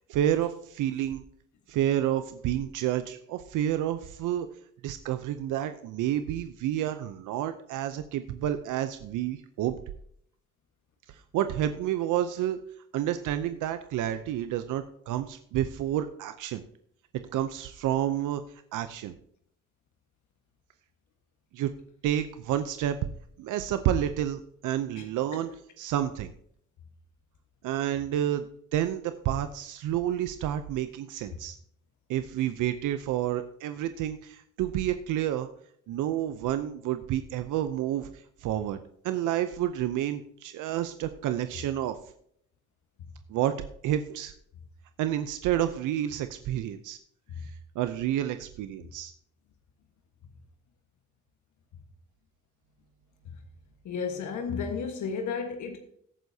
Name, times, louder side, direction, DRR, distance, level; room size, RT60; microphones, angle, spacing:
voice 1, 0.1-1.2 1.7-4.5 4.8-9.8 11.3-12.6 12.9-16.6 17.3-18.4 18.7-19.1 21.5-21.7 22.0-23.0 23.4-25.5 25.8-26.3 27.6-31.6 32.1-35.5 35.9-38.1 38.4-38.8 39.0-42.0 43.3-43.5 43.8-44.3 45.0-47.0 47.4-47.5 47.8-49.1, right 11 dB, 85° right, 10 dB, 0.7 m, -29 dB
voice 2, 53.8-55.8, left 5 dB, 70° left, 4 dB, 1.5 m, -33 dB
17.5 x 9.2 x 2.8 m, 0.68 s
cardioid pair, 90°, 30 cm